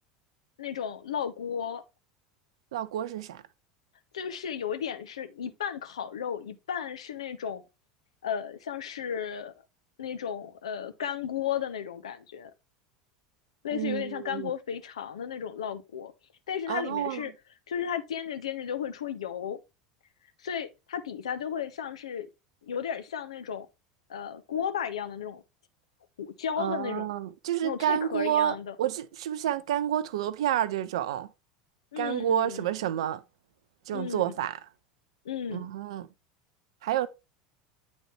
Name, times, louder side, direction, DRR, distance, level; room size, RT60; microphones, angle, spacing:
voice 1, 0.6-1.8 4.1-7.6 8.2-9.5 10.0-12.5 13.6-16.1 16.5-17.3 17.7-19.6 20.4-22.3 22.6-23.7 24.1-25.4 26.2-27.1 27.6-28.8 31.9-32.7 33.9-34.2 35.2-35.7, left 8 dB, 70° left, 0.7 m, -34 dB
voice 2, 2.7-3.4 13.7-14.5 16.7-17.2 26.6-31.3 32.0-33.2 33.9-34.6 35.5-36.1 36.8-37.1, right 11 dB, 60° right, 0.5 m, -29 dB
8.7 x 4.2 x 3.2 m
figure-of-eight pair, 75°, 3 cm